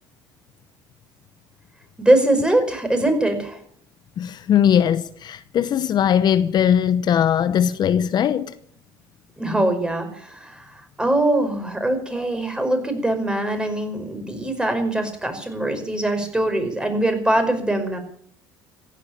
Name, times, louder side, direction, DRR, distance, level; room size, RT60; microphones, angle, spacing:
voice 1, 2.0-3.6 9.4-18.0, right 1 dB, 10° right, 5.4 m, -22 dB
voice 2, 4.2-8.5, left 9 dB, 50° left, 0.9 m, -19 dB
16.0 x 9.9 x 9.0 m
supercardioid pair, 90°, 9 cm